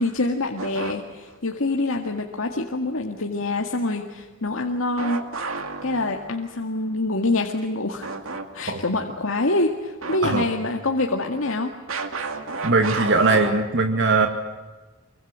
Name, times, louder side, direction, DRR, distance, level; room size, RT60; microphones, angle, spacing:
voice 1, 0.0-5.2 5.8-8.1 8.5-11.7, left 2 dB, 85° left, 2 dB, 2.0 m, -25 dB
sound 1, 0.6-1.4 5.0-6.5 8.0-8.5 8.8-8.9 10.0-10.8 11.9-13.5, right 4 dB, 85° right, 2.3 m, -32 dB
voice 2, 12.6-14.3, right 3 dB, 65° right, 5 dB, 2.1 m, -20 dB
25.0 x 24.5 x 7.6 m, 1.3 s
head